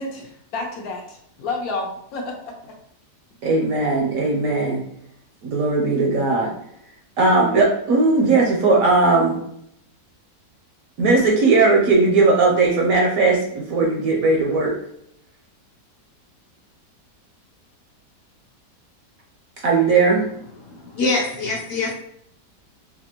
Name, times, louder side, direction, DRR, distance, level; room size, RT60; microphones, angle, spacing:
voice 1, 0.0-2.7, left 3 dB, 70° left, 0 dB, 1.0 m, -30 dB
voice 2, 3.4-4.8 5.4-6.5 7.2-9.4 11.0-14.7 19.6-20.2, right 3 dB, 65° right, -1 dB, 0.9 m, -18 dB
voice 3, 20.6-21.9, left 3 dB, 90° left, -3 dB, 0.5 m, -24 dB
4.1 x 2.5 x 2.9 m, 0.71 s
omnidirectional pair, 1.8 m